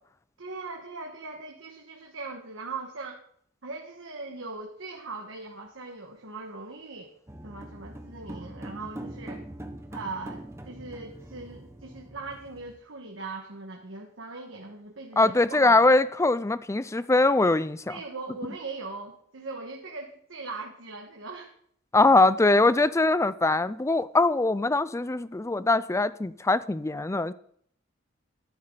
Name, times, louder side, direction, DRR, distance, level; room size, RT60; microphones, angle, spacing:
voice 1, 0.4-3.2 3.6-7.1 7.4-9.4 9.9-15.9 17.9-21.5, right 3 dB, 75° right, 1.6 m, -40 dB
sound 1, 7.3-12.7, right 1 dB, 15° right, 1.2 m, -42 dB
voice 2, 15.2-18.0 21.9-27.3, left 2 dB, 15° left, 0.5 m, -22 dB
12.0 x 12.0 x 4.0 m
head